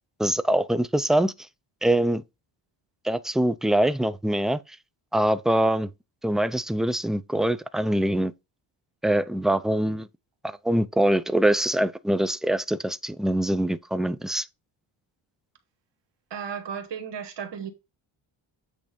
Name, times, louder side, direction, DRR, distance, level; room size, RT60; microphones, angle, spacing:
voice 1, 0.2-1.3 1.8-2.2 3.0-4.6 5.1-5.9 6.2-8.3 9.0-10.1 10.4-14.5, right 1 dB, ahead, 0.4 m, -23 dB
voice 2, 16.3-17.7, right 7 dB, 55° right, 1.5 m, -34 dB
8.6 x 3.4 x 5.1 m
cardioid pair, 95°, 49 cm